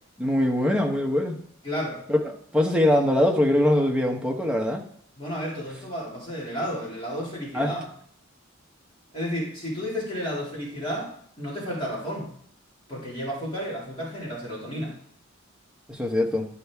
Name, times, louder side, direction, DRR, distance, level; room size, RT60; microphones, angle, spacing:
voice 1, 0.2-1.4 2.1-4.8 7.5-7.7 15.9-16.4, left 1 dB, 5° right, 0 dB, 1.0 m, -22 dB
voice 2, 1.6-2.0 5.2-7.8 9.1-12.3 12.9-15.0, equal, 25° left, -5 dB, 2.4 m, -32 dB
11.5 x 5.5 x 3.5 m, 0.64 s
head